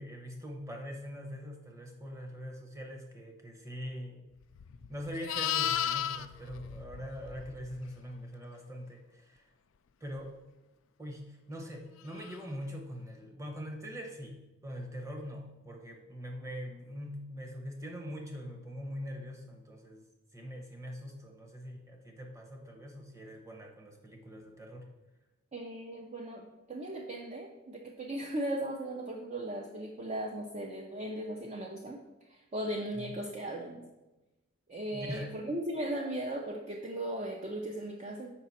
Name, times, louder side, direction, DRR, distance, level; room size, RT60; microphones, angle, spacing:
voice 1, 0.0-4.2 4.9-9.5 10.0-10.3 11.0-20.0 20.3-24.9 32.9-33.1 34.9-35.4, equal, 15° right, 2 dB, 0.8 m, -43 dB
Livestock farm animals working animals, 4.5-7.8 12.2-12.4, left 10 dB, 65° left, 0.3 m, -34 dB
voice 2, 25.5-32.0 32.3-33.8 34.7-38.3, right 1 dB, 30° right, 1 dB, 0.4 m, -37 dB
5.9 x 5.0 x 4.1 m, 1.1 s
head